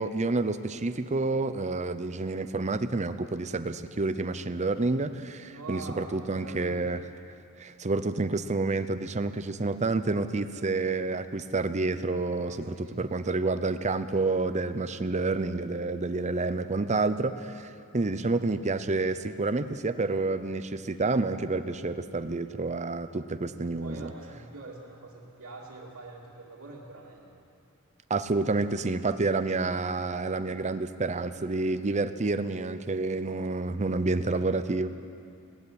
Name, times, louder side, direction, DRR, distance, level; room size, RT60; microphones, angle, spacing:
voice 1, 0.0-7.0 7.6-24.1 28.1-34.9, right 3 dB, 30° right, 11 dB, 0.7 m, -29 dB
voice 2, 5.4-7.0 12.4-13.0 23.6-27.4, right 2 dB, 75° right, -7 dB, 2.5 m, -45 dB
18.0 x 15.5 x 9.7 m, 2.5 s
head